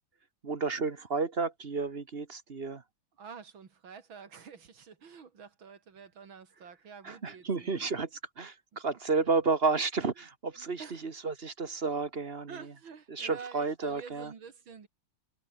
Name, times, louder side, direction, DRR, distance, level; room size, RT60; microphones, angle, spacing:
voice 1, 0.4-2.8 7.0-12.7 13.1-14.3, right 4 dB, 35° right, 1.4 m, -32 dB
voice 2, 3.2-7.8 10.6-11.0 12.5-14.9, right 6 dB, 85° right, 3.2 m, -48 dB
omnidirectional pair, 2.1 m